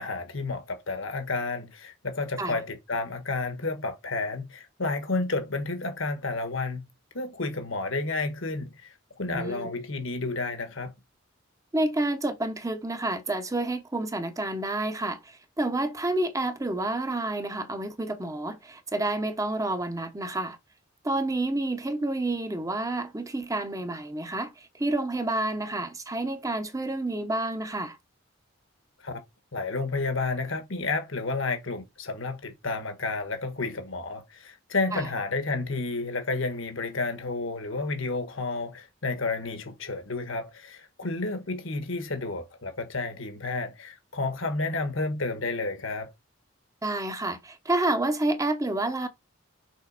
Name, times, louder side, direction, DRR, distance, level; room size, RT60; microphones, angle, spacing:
voice 1, 0.0-6.9 7.1-10.9 29.0-29.2 29.5-46.1, left 3 dB, 75° left, 1.5 m, -31 dB
voice 2, 9.3-9.7 11.7-20.6 21.0-28.0 34.9-35.0 46.8-49.1, right 2 dB, 15° right, 0.9 m, -29 dB
6.3 x 4.0 x 4.1 m
head